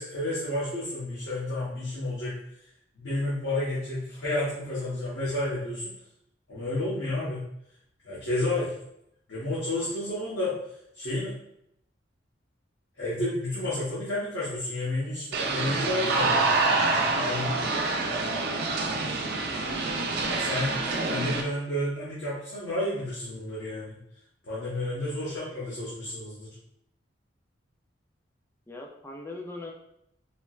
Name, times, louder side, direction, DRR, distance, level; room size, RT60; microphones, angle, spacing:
voice 1, 0.0-2.4 3.0-5.9 6.5-7.5 8.0-8.7 9.3-10.5 11.0-11.3 13.0-16.4 17.1-17.6 19.9-20.7 21.0-24.0 24.5-26.6, left 1 dB, 65° left, -9 dB, 0.9 m, -31 dB
sound 1, 15.3-21.4, right 3 dB, 55° right, 0.4 m, -27 dB
voice 2, 28.7-29.7, left 2 dB, 15° left, 1 dB, 0.3 m, -40 dB
4.2 x 2.1 x 2.3 m, 0.77 s
head